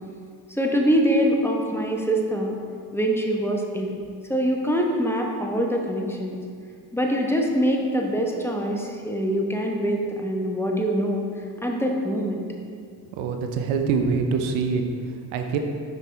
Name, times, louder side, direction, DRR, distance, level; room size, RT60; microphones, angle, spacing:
voice 1, 0.5-2.6 2.9-3.9 4.3-6.4 6.9-11.3 11.6-12.4, equal, 5° left, 0 dB, 1.0 m, -24 dB
voice 2, 13.1-14.8 15.3-15.6, right 5 dB, 85° right, 5 dB, 0.6 m, -24 dB
5.9 x 5.5 x 3.4 m, 2.2 s
hypercardioid pair, 45°, 46 cm